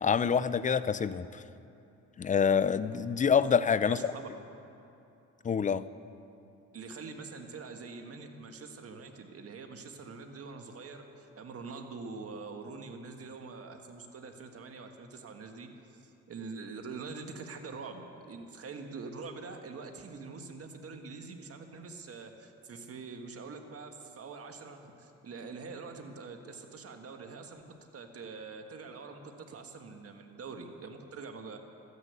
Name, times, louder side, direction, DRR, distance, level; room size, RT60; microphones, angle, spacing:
voice 1, 0.0-1.4 2.2-4.0 5.4-5.8, left 7 dB, 25° left, 16 dB, 0.4 m, -26 dB
voice 2, 3.8-4.3 6.7-27.6 27.9-31.6, right 4 dB, 50° right, 5 dB, 1.6 m, -44 dB
13.0 x 9.8 x 8.2 m, 2.8 s
cardioid pair, 90°, 30 cm